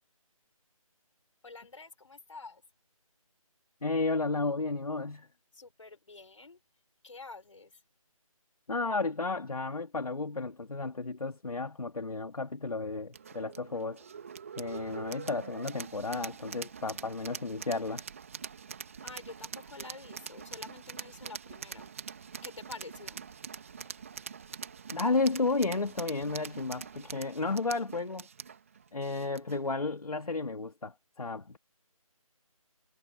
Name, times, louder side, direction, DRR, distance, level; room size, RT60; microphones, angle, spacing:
voice 1, 1.4-2.6 5.5-6.6 7.0-7.7 19.0-21.9 22.4-23.2, left 3 dB, 60° left, 4.6 m, -48 dB
voice 2, 3.8-5.3 8.7-14.0 14.6-18.0 24.9-28.3 28.9-31.6, left 3 dB, 85° left, 2.0 m, -32 dB
sound 1, 13.1-29.7, right 6 dB, 25° right, 2.0 m, -44 dB
figure-of-eight pair, 175°, 18 cm